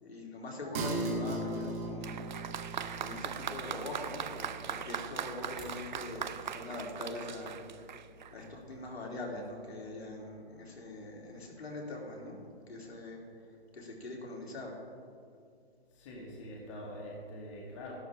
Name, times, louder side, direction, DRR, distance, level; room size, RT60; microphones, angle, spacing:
voice 1, 0.0-2.5 3.0-8.0 8.3-12.4 12.7-14.8, left 2 dB, 85° left, -2 dB, 3.2 m, -43 dB
sound 1, 0.7-7.8 8.1-8.2, right 1 dB, 15° right, 0.8 m, -40 dB
Applause, 2.0-8.5 9.4-9.5, right 8 dB, 50° right, 0.5 m, -40 dB
sound 2, 5.3-5.9, left 1 dB, ahead, 1.4 m, -52 dB
voice 2, 15.9-17.9, left 1 dB, 30° left, -3 dB, 2.0 m, -44 dB
13.0 x 11.5 x 3.6 m, 2.3 s
hypercardioid pair, 165°, 31 cm